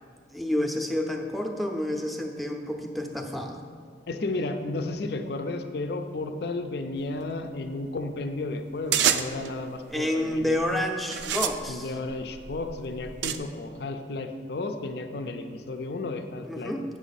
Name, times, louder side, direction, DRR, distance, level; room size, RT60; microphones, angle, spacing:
voice 1, 0.3-3.6 9.9-11.9 16.4-16.8, left 1 dB, ahead, 3 dB, 0.5 m, -29 dB
voice 2, 4.1-10.6 11.7-16.8, left 2 dB, 60° left, 7 dB, 0.5 m, -33 dB
sound 1, 8.9-9.5 10.3-10.6 11.1-13.4, right 9 dB, 80° right, 0.4 m, -28 dB
8.3 x 6.1 x 4.1 m, 2.1 s
head